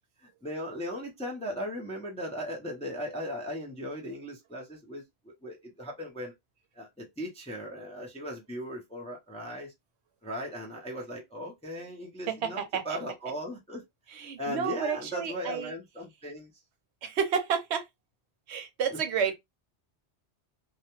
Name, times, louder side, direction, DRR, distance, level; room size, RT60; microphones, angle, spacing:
voice 1, 0.4-5.0 5.4-6.3 6.8-9.7 10.2-13.8 14.4-16.5, equal, 10° left, 0.5 m, -37 dB
voice 2, 12.3-13.0 14.1-15.7 17.0-17.9 18.5-19.3, right 7 dB, 75° right, 0.9 m, -30 dB
2.3 x 2.2 x 2.9 m
omnidirectional pair, 1.2 m